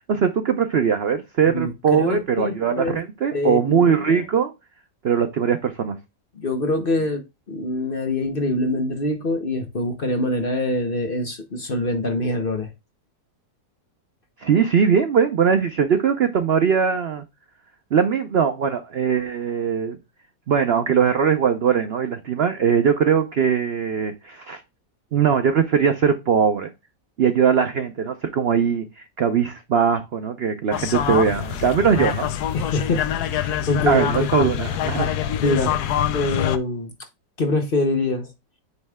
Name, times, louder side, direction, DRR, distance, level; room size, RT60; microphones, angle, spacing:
voice 1, 0.0-4.5 5.0-6.0 14.4-17.2 17.9-20.0 20.5-24.6 25.1-26.7 27.2-32.3 33.9-35.1, right 7 dB, 75° right, 0.5 m, -20 dB
voice 2, 1.5-3.0 3.3-4.3 6.3-12.7 32.5-33.1 33.3-34.3 35.4-36.9 37.4-38.3, left 2 dB, 40° left, 0.9 m, -25 dB
sound 1, 30.7-36.6, left 10 dB, 70° left, 1.1 m, -25 dB
9.4 x 3.2 x 3.5 m
omnidirectional pair, 1.9 m